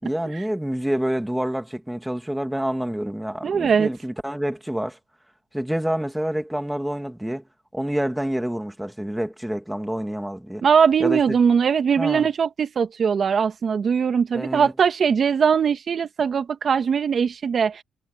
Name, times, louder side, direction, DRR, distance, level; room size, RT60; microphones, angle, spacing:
voice 1, 0.0-5.0 5.5-7.4 7.7-10.6 11.0-11.4 12.0-12.3 14.3-14.7, right 1 dB, 5° right, 2.5 m, -27 dB
voice 2, 3.4-3.9 10.6-17.8, right 6 dB, 50° right, 1.6 m, -20 dB
cardioid pair, 90°, 0 cm